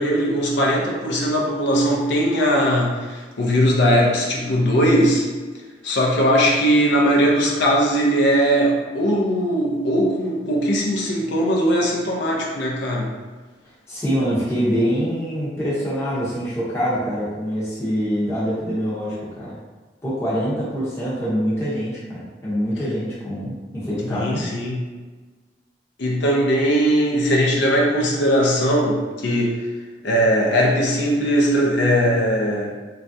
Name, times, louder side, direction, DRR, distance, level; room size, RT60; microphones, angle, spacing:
voice 1, 0.0-5.2 5.8-13.1 24.0-24.8 26.0-29.7 30.0-32.7, equal, 70° left, -2 dB, 0.5 m, -19 dB
voice 2, 13.9-19.6 20.0-24.5, equal, 15° left, -10 dB, 0.6 m, -24 dB
3.2 x 2.4 x 2.6 m, 1.3 s
head